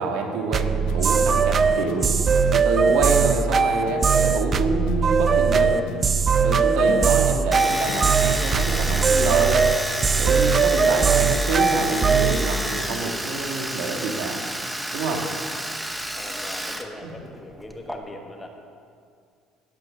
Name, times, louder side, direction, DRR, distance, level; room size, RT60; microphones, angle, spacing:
voice 1, 0.0-2.1 2.5-5.8 6.4-9.6 10.2-14.4 14.9-15.3 17.0-17.1, right 3 dB, 85° right, 2 dB, 2.0 m, -27 dB
sound 1, 0.5-12.4, right 5 dB, 30° right, 0.5 m, -20 dB
sound 2, 0.9-11.7, left 8 dB, 75° left, 0.8 m, -40 dB
Domestic sounds home sounds, 7.5-16.8 17.1-17.9, right 1 dB, 5° right, 0.9 m, -30 dB
voice 2, 16.2-18.5, left 1 dB, 10° left, 2 dB, 1.4 m, -39 dB
17.0 x 8.0 x 6.5 m, 2.3 s
cardioid pair, 145°, 0 cm